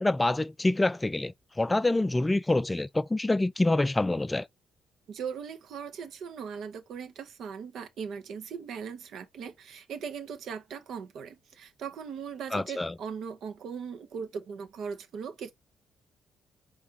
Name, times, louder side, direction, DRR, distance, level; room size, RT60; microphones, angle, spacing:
voice 1, 0.0-4.5 12.5-12.9, left 2 dB, 20° left, 0.3 m, -26 dB
voice 2, 5.1-15.5, right 6 dB, 70° right, 0.8 m, -39 dB
4.4 x 2.5 x 3.6 m
supercardioid pair, 55°, 0 cm